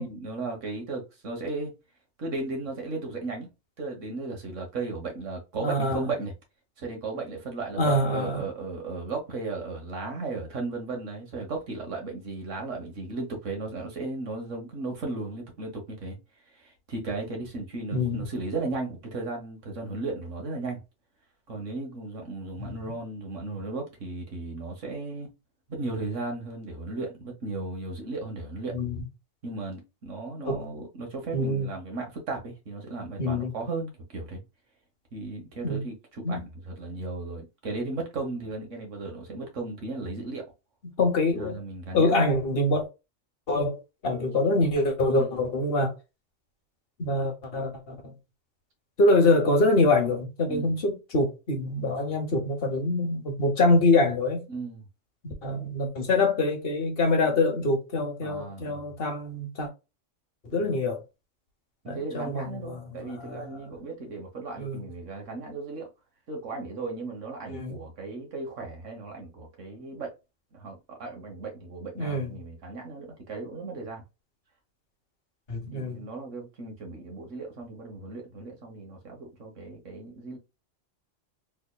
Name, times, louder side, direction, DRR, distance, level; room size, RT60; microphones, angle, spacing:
voice 1, 0.0-1.7 2.2-3.5 3.8-6.3 6.8-20.8 21.5-25.3 25.7-28.8 29.4-34.4 35.1-40.4 41.4-42.2 45.2-45.4 50.5-50.8 54.5-54.8 55.5-55.7 57.2-57.4 58.2-58.9 60.5-60.7 61.8-65.9 66.3-70.1 70.5-74.0 75.7-80.4, right 3 dB, 80° right, 1.6 m, -36 dB
voice 2, 5.6-6.0 7.8-8.5 17.9-18.2 22.6-22.9 28.7-29.0 30.5-30.6 31.3-31.7 33.2-33.5 35.6-35.8 36.2-36.4 41.0-41.5 41.9-42.8 43.5-45.9 47.0-48.1 49.0-54.4 55.2-59.7 60.4-61.0 61.9-63.7 64.6-64.8 67.5-67.7 72.0-72.3 75.5-76.0, left 2 dB, 50° left, 1.3 m, -25 dB
3.5 x 3.5 x 2.3 m
omnidirectional pair, 1.3 m